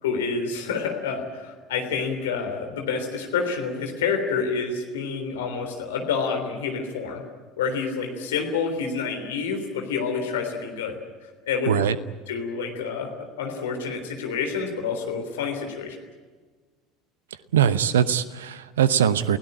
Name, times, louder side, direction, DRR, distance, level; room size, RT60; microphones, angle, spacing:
voice 1, 0.0-7.2 7.6-10.9 11.2-11.7 12.3-13.1 13.4-16.0, left 5 dB, 65° left, 4 dB, 3.5 m, -28 dB
voice 2, 17.5-19.4, right 9 dB, 70° right, 16 dB, 0.8 m, -21 dB
28.5 x 17.0 x 8.9 m, 1.4 s
figure-of-eight pair, 65°, 0 cm